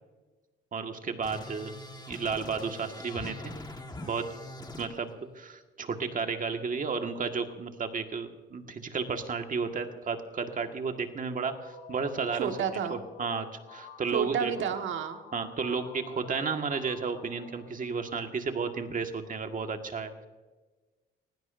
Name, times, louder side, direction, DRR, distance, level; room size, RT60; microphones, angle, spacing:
voice 1, 0.7-1.7 2.1-3.5 4.0-4.2 4.8-12.5 12.9-14.5 15.3-20.2, right 5 dB, 40° right, 5 dB, 1.6 m, -33 dB
sound 1, 1.2-4.9, left 2 dB, 20° left, 1.5 m, -43 dB
sound 2, 11.4-18.2, left 5 dB, 85° left, 3.4 m, -50 dB
voice 2, 12.3-13.0 14.1-15.2, right 7 dB, 75° right, 6 dB, 1.4 m, -30 dB
20.5 x 16.0 x 2.6 m, 1.3 s
cardioid pair, 90°, 20 cm